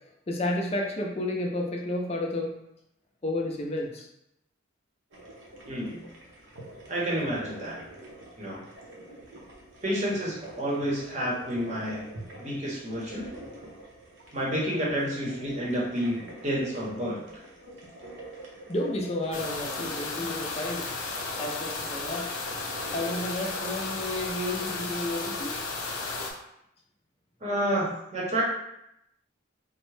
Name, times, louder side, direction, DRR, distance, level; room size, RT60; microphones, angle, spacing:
voice 1, 0.3-2.5 3.2-4.1 18.7-20.9 21.4-22.3 22.9-25.6, left 1 dB, 30° left, 1 dB, 0.4 m, -31 dB
sound 1, 5.1-23.7, right 1 dB, 70° right, 0.7 m, -46 dB
voice 2, 5.7-6.0 6.9-7.8 8.4-8.6 9.8-12.1 12.4-13.3 14.3-17.2 27.4-28.4, equal, 35° right, -4 dB, 0.8 m, -29 dB
sound 2, 19.3-26.3, left 3 dB, 85° left, 0.6 m, -34 dB
3.5 x 2.1 x 3.2 m, 0.80 s
head